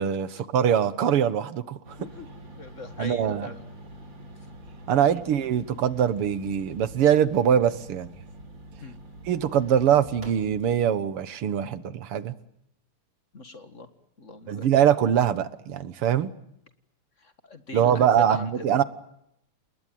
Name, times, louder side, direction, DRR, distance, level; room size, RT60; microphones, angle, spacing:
voice 1, 0.0-2.0 3.0-3.5 4.9-8.1 9.3-12.4 14.5-16.3 17.7-18.8, right 9 dB, 90° right, 2.3 m, -23 dB
sound 1, 1.8-10.8, right 1 dB, 55° right, 4.9 m, -45 dB
voice 2, 2.5-3.6 4.9-5.1 8.8-9.0 13.3-13.9 14.2-14.7 17.2-18.7, left 3 dB, 35° left, 2.0 m, -41 dB
29.5 x 20.0 x 9.3 m
omnidirectional pair, 2.4 m